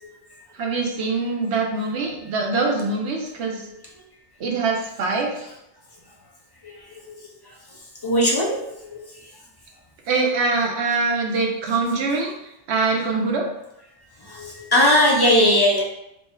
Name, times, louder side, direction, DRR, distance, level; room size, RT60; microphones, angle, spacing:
voice 1, 0.5-3.7 4.4-5.4 10.1-12.3 12.7-13.4, right 3 dB, 75° right, 1 dB, 1.0 m, -23 dB
voice 2, 6.6-7.1 8.0-9.1 14.2-15.8, left 1 dB, 35° left, -2 dB, 0.4 m, -20 dB
3.0 x 2.4 x 4.2 m, 0.83 s
omnidirectional pair, 1.1 m